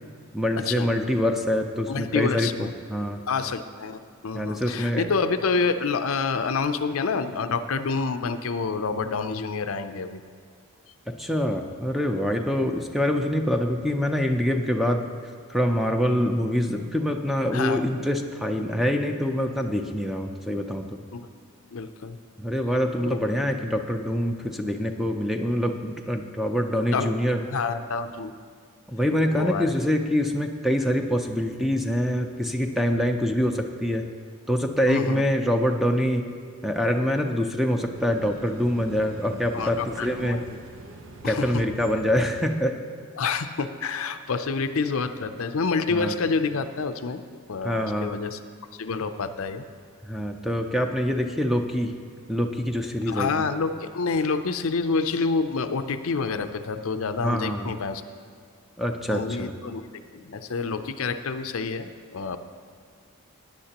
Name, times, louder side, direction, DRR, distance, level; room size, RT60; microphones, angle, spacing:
voice 1, 0.3-3.2 4.3-5.1 11.1-15.1 15.5-21.0 22.4-27.4 28.9-34.1 34.5-36.3 36.6-40.4 41.2-42.8 45.9-46.1 47.6-48.1 50.0-52.0 52.3-53.3 57.2-57.7 58.8-59.5, equal, ahead, 4 dB, 0.5 m, -25 dB
voice 2, 1.9-2.7 3.3-10.2 17.5-17.8 21.1-21.3 21.7-22.2 23.1-23.2 26.9-27.1 27.5-28.3 29.3-29.6 34.9-35.2 39.5-40.6 41.2-41.5 43.2-47.2 47.5-48.4 48.7-49.6 53.1-58.0 59.1-62.4, left 4 dB, 70° left, 9 dB, 0.5 m, -28 dB
sound 1, 37.6-42.6, right 2 dB, 60° right, 0.8 m, -43 dB
16.5 x 10.0 x 2.9 m, 2.1 s
head